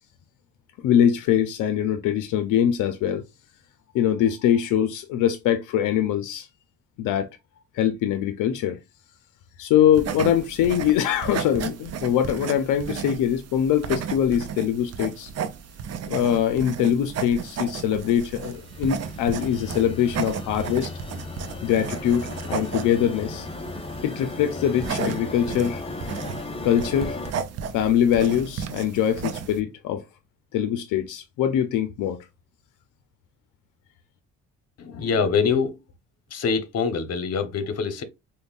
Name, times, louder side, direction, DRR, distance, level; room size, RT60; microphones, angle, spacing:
voice 1, 0.8-3.2 3.9-6.5 7.0-7.3 7.7-8.8 9.6-15.3 16.1-20.9 21.6-23.5 24.0-25.8 26.6-27.2 27.7-30.0 30.5-32.2, left 10 dB, 85° left, 0.5 m, -23 dB
sound 1, 9.9-29.6, right 7 dB, 55° right, 0.6 m, -34 dB
sound 2, 17.7-27.3, left 3 dB, 20° left, 0.5 m, -36 dB
voice 2, 34.8-35.8 36.3-38.0, left 5 dB, 55° left, 0.9 m, -24 dB
5.2 x 2.2 x 2.4 m
cardioid pair, 90°, 30 cm